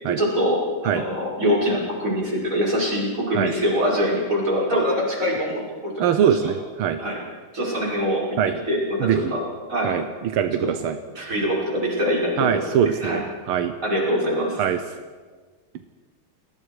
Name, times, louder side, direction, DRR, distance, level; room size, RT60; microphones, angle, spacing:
voice 1, 0.0-6.1 7.0-7.2 7.5-8.4 8.7-10.0 10.6-10.7 11.2-12.6 13.0-13.2 13.8-14.6, equal, 40° right, -4 dB, 6.0 m, -24 dB
voice 2, 6.0-7.0 8.4-8.6 9.0-9.4 9.8-11.0 12.4-13.7 14.6-14.8, right 8 dB, 85° right, 8 dB, 1.8 m, -22 dB
29.5 x 19.5 x 4.9 m, 1.5 s
omnidirectional pair, 2.3 m